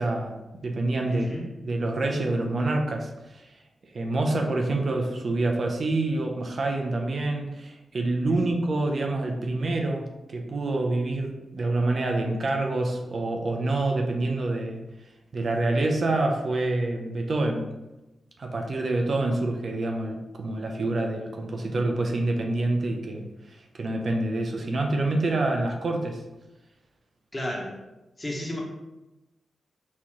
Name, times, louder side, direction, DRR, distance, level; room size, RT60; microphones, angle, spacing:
voice 1, 0.0-1.3 1.6-3.5 3.9-14.8 15.3-17.7 18.4-26.2, right 2 dB, 60° right, 3 dB, 0.6 m, -27 dB
voice 2, 1.1-1.5 8.3-8.6 27.3-27.8 28.2-28.6, equal, 25° left, -2 dB, 1.2 m, -33 dB
4.2 x 2.9 x 3.7 m, 1.0 s
cardioid pair, 50°, 0 cm